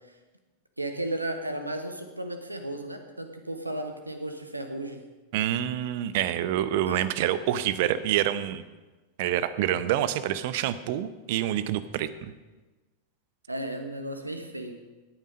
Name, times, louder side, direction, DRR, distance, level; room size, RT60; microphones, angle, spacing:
voice 1, 0.8-5.0 6.9-7.0 13.5-14.7, right 1 dB, 85° right, 7 dB, 1.3 m, -34 dB
voice 2, 5.3-8.6 9.2-12.3, right 12 dB, 50° right, 14 dB, 0.8 m, -27 dB
17.5 x 9.2 x 5.2 m, 1.2 s
figure-of-eight pair, 90°, 0 cm